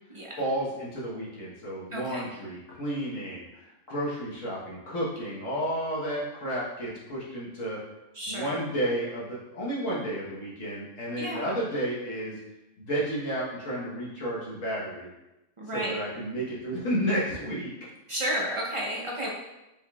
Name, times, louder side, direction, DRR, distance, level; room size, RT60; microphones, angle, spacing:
voice 1, 0.4-7.8 8.3-12.3 12.8-15.1 15.7-17.7, right 1 dB, 80° left, -6 dB, 1.6 m, -32 dB
voice 2, 1.9-2.2 8.1-8.6 11.1-11.5 15.6-16.0 18.1-19.3, equal, 50° right, -2 dB, 0.3 m, -32 dB
5.2 x 3.6 x 2.3 m, 0.95 s
omnidirectional pair, 1.3 m